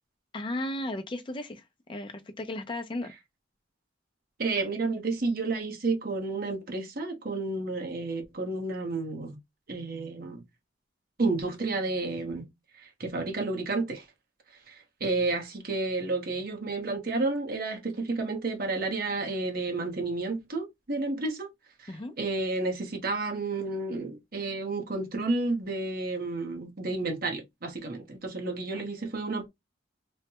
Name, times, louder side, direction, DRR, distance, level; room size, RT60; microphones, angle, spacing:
voice 1, 0.3-1.6 1.9-3.1 21.9-22.1 28.7-28.8, left 1 dB, 25° left, 0.5 m, -35 dB
voice 2, 4.4-9.4 9.7-10.4 11.2-12.5 12.8-14.0 14.7-21.5 21.8-29.5, right 3 dB, 55° right, 0.9 m, -31 dB
3.1 x 2.1 x 2.9 m
head